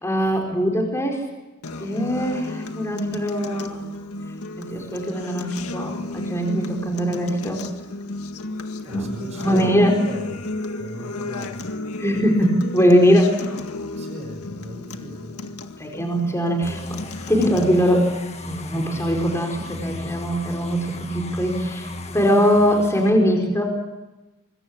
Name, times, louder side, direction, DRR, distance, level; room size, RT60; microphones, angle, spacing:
voice 1, 0.0-1.2 1.8-3.8 4.6-7.6 8.9-10.0 12.0-13.4 15.8-17.0 17.3-18.1 18.5-23.6, equal, 10° left, 1 dB, 4.8 m, -21 dB
Acoustic guitar, 1.6-17.6, left 2 dB, 80° left, 1.9 m, -33 dB
voice 2, 8.8-10.4 10.8-11.6 14.0-15.5, right 1 dB, 30° right, 5 dB, 6.1 m, -38 dB
sound 1, 16.6-23.1, left 1 dB, 30° left, 1.8 m, -34 dB
26.0 x 22.0 x 8.7 m, 1.1 s
head